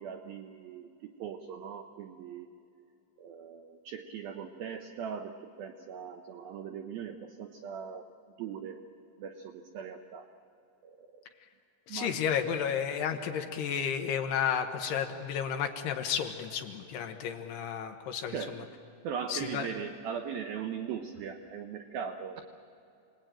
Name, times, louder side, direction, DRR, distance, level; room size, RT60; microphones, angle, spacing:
voice 1, 0.0-2.5 3.2-8.1 8.4-8.8 9.2-10.3 10.8-11.2 11.9-12.2 18.3-18.7 19.0-22.4, right 7 dB, 85° right, 6 dB, 2.1 m, -40 dB
voice 2, 11.9-18.4 19.3-19.7, left 8 dB, 70° left, 5 dB, 2.8 m, -32 dB
28.5 x 20.0 x 9.0 m, 2.8 s
omnidirectional pair, 5.4 m